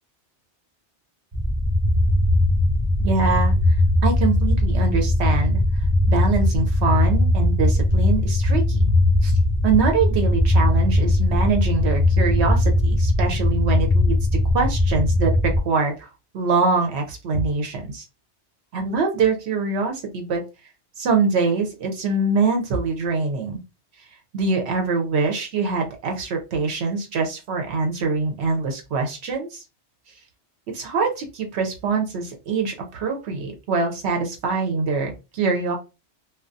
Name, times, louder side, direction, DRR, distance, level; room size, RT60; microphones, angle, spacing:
sound 1, 1.3-15.6, left 1 dB, 30° right, 0.5 m, -19 dB
voice 1, 3.0-3.8 4.0-5.6 6.1-8.9 9.2-14.2 14.5-18.1 18.7-20.4 21.0-23.6 24.3-29.6 30.7-35.8, right 4 dB, 75° right, 3 dB, 0.8 m, -24 dB
2.3 x 2.2 x 2.5 m, 0.28 s
omnidirectional pair, 1.1 m